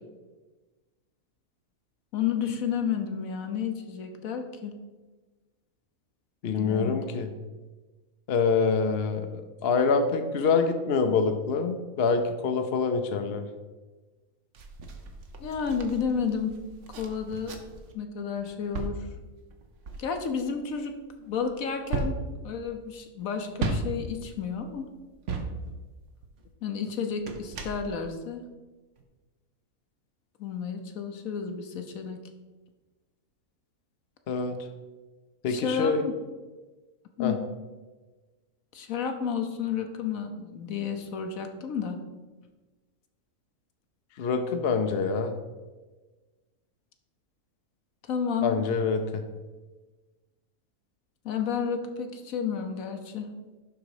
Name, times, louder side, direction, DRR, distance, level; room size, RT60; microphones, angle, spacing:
voice 1, 2.1-4.7 6.6-7.0 15.4-16.5 17.0-17.6 17.9-19.1 20.0-20.9 21.2-22.2 22.4-24.9 26.6-28.5 30.4-32.2 35.5-36.1 37.2-37.4 38.7-42.0 48.1-48.6 51.2-53.3, left 7 dB, 70° left, 6 dB, 1.2 m, -31 dB
voice 2, 6.4-7.3 8.3-13.5 34.3-34.7 35.4-36.1 37.2-37.4 44.2-45.3 48.4-49.2, left 5 dB, 55° left, 7 dB, 0.8 m, -26 dB
sound 1, 14.5-17.9 18.3-26.4 27.1-28.3 29.0-29.1, right 3 dB, 60° right, 1.2 m, -36 dB
11.5 x 3.9 x 4.8 m, 1.2 s
omnidirectional pair, 1.5 m